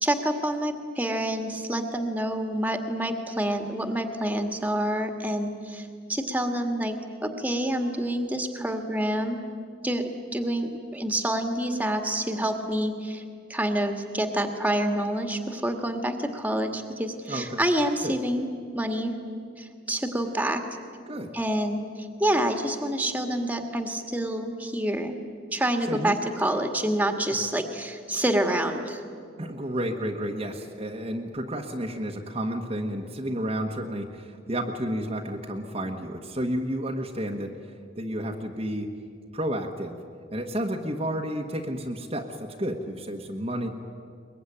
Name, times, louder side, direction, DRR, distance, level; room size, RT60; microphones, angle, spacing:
voice 1, 0.0-7.0 7.2-9.4 9.8-13.2 13.5-18.5 18.7-19.1 19.6-20.6 21.3-25.2 25.5-29.0, right 1 dB, 10° right, 6 dB, 1.8 m, -27 dB
voice 2, 17.3-17.6 18.0-18.1 21.1-21.3 25.9-26.2 29.4-37.6 38.0-38.9 39.3-40.0 40.3-43.7, equal, 30° right, 1 dB, 1.4 m, -31 dB
22.5 x 21.5 x 10.0 m, 2.3 s
head